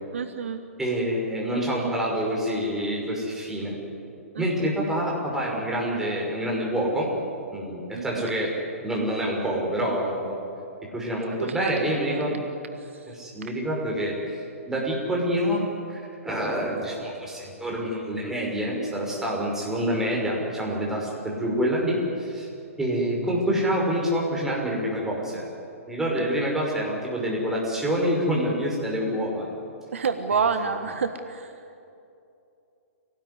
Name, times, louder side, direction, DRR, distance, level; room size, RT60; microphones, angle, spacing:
voice 1, 0.1-0.6 4.3-4.7 7.9-8.3 11.3-12.4 12.8-13.1 26.2-26.3 29.9-31.5, right 5 dB, 60° right, 8 dB, 1.4 m, -29 dB
voice 2, 0.8-3.8 4.4-7.1 7.5-8.5 8.8-10.4 10.9-12.5 13.1-15.6 15.9-22.5 22.8-25.4 25.9-29.5, equal, 5° right, -3 dB, 5.9 m, -27 dB
26.0 x 18.5 x 9.8 m, 2.7 s
figure-of-eight pair, 125°, 8 cm